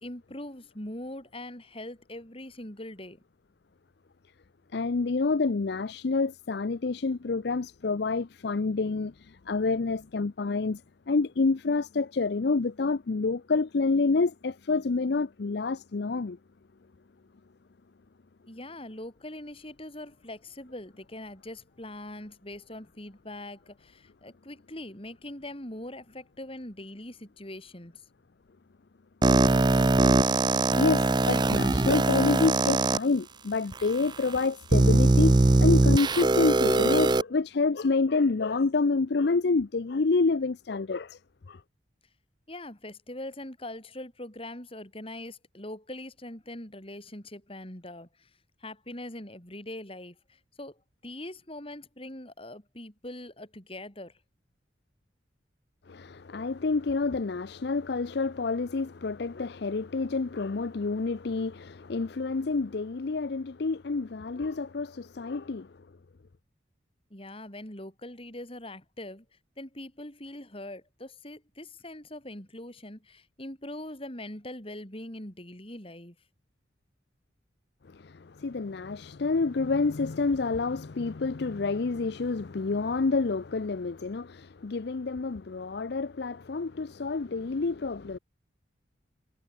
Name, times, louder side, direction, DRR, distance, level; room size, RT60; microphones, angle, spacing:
voice 1, 0.0-3.2 18.5-28.0 42.5-48.3 48.6-54.2 67.1-69.3 69.6-76.2, left 1 dB, 30° left, 4.3 m, -42 dB
voice 2, 4.7-10.8 11.1-16.4 30.7-41.2 41.5-41.6 55.9-65.7 77.9-88.2, left 3 dB, 60° left, 0.5 m, -28 dB
sound 1, 29.2-33.0 33.7-33.8 34.7-37.2, right 2 dB, 25° right, 0.5 m, -21 dB
head